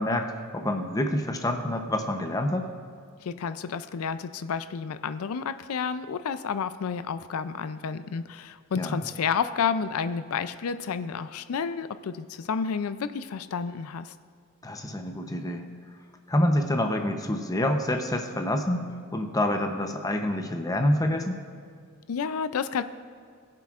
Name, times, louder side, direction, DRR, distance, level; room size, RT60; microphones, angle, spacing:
voice 1, 0.0-2.7 8.8-9.0 14.6-15.6 16.3-21.4, left 1 dB, 15° left, 5 dB, 0.7 m, -27 dB
voice 2, 3.2-14.1 22.1-22.8, left 6 dB, 85° left, 12 dB, 0.4 m, -30 dB
20.5 x 7.6 x 2.5 m, 2.2 s
head